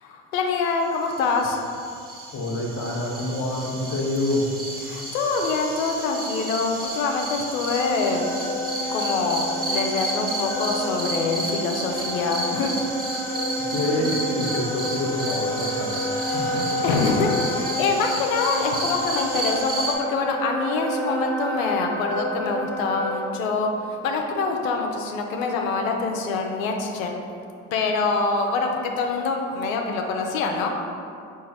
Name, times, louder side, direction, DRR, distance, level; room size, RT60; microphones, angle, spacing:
voice 1, 0.0-1.6 4.8-8.4 8.9-12.7 16.4-16.5 16.8-27.2 27.7-30.7, left 4 dB, 90° left, 3 dB, 0.5 m, -25 dB
sound 1, 1.1-19.9, right 2 dB, 20° right, 1.1 m, -32 dB
voice 2, 2.3-4.5 13.7-16.0 16.3-16.7, left 1 dB, 40° left, -2 dB, 0.9 m, -27 dB
Wind instrument woodwind instrument, 7.8-23.3, left 1 dB, 5° left, 0.9 m, -30 dB
4.0 x 2.5 x 4.0 m, 2.4 s
hypercardioid pair, 65°, 39 cm